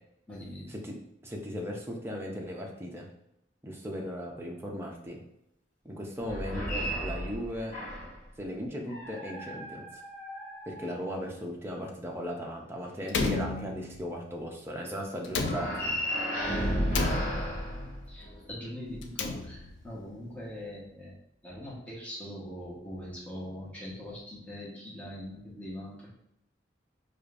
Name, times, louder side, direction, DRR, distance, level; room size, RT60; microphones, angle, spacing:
voice 1, 0.3-0.7 18.1-21.2 21.4-26.1, left 1 dB, 10° left, -6 dB, 1.0 m, -42 dB
voice 2, 1.2-3.1 3.6-5.2 5.8-7.7 8.4-9.8 10.7-16.0, equal, 15° right, -1 dB, 0.6 m, -37 dB
sound 1, 6.2-8.2 8.9-11.3 15.4-18.5, equal, 40° left, 1.5 m, -34 dB
Slam, 13.1-14.2 15.2-16.2 16.9-17.8 18.9-19.9, left 4 dB, 75° left, 0.4 m, -33 dB
4.9 x 2.5 x 2.5 m, 0.80 s
head